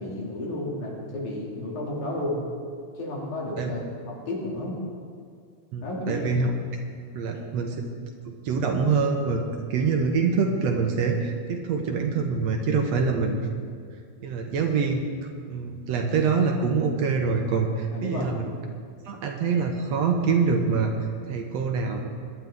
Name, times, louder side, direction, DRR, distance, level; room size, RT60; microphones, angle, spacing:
voice 1, 0.0-2.4 2.9-3.8 4.1-4.7 5.8-6.3 7.3-7.5 17.9-18.3, left 1 dB, 70° left, -4 dB, 4.1 m, -32 dB
voice 2, 5.7-6.5 7.1-7.9 8.3-9.4 9.7-13.7 14.2-15.0 15.5-18.4 19.1-20.9 21.3-22.1, right 5 dB, 70° right, 3 dB, 2.0 m, -25 dB
22.5 x 11.0 x 3.6 m, 2.2 s
omnidirectional pair, 3.5 m